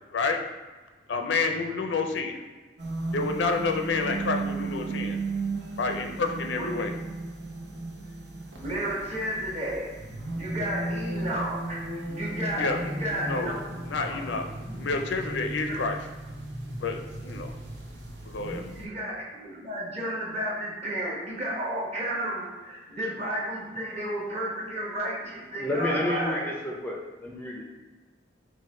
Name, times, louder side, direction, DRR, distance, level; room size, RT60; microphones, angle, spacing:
voice 1, 1.1-2.4 3.1-5.2 5.8-6.9 12.6-12.8 13.2-13.5 13.9-14.4 14.8-16.0 16.8-17.5 18.3-18.6, left 4 dB, 70° left, 5 dB, 0.4 m, -29 dB
sound 1, 2.8-18.9, right 2 dB, 65° right, 0.9 m, -35 dB
voice 2, 8.6-9.9 10.3-13.5 14.0-14.2 14.7-14.8 15.7-15.8 18.5-26.5, right 1 dB, 35° right, -5 dB, 1.2 m, -32 dB
voice 3, 25.5-27.6, left 1 dB, 10° left, -2 dB, 0.4 m, -30 dB
4.9 x 2.2 x 4.2 m, 1.3 s
head